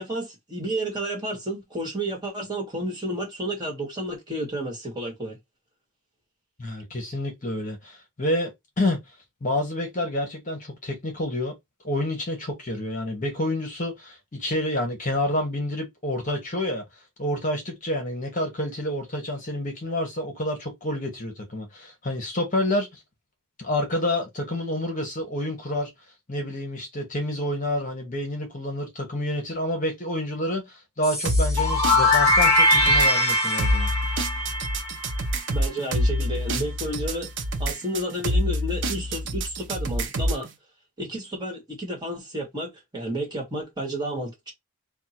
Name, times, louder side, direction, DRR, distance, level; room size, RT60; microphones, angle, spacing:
voice 1, 0.0-5.4 35.5-37.3 37.6-40.5 41.0-44.5, right 1 dB, 20° right, 1.6 m, -31 dB
voice 2, 6.6-9.0 9.4-11.5 11.8-16.8 17.2-22.9 23.6-25.9 26.3-33.9, left 1 dB, 35° left, 1.1 m, -28 dB
sound 1, 31.0-35.8, left 1 dB, 15° left, 1.4 m, -22 dB
sound 2, 31.2-40.5, equal, 55° right, 0.7 m, -27 dB
3.6 x 2.3 x 4.3 m
head